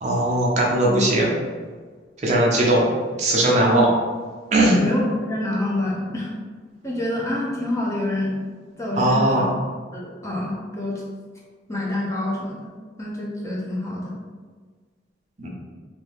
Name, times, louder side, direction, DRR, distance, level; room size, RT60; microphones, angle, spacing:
voice 1, 0.0-1.3 2.2-2.8 3.2-3.9 4.5-4.8 9.0-9.5 15.4-15.5, right 1 dB, 40° right, -3 dB, 0.6 m, -19 dB
voice 2, 3.5-3.8 4.6-6.3 6.8-8.4 8.8-9.4 9.9-11.0 11.7-12.7 13.0-14.1, left 1 dB, 15° left, -5 dB, 0.5 m, -26 dB
2.8 x 2.7 x 3.3 m, 1.5 s
head